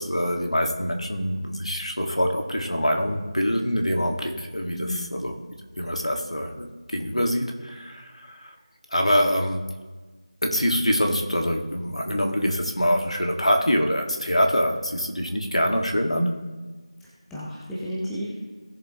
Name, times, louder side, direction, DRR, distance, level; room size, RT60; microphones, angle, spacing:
voice 1, 0.0-5.3 5.8-8.5 8.9-9.6 10.4-16.3, equal, 75° left, 3 dB, 1.7 m, -25 dB
voice 2, 4.8-5.2 17.0-18.4, equal, ahead, -8 dB, 0.4 m, -33 dB
17.0 x 7.3 x 2.9 m, 1.3 s
figure-of-eight pair, 170°, 3 cm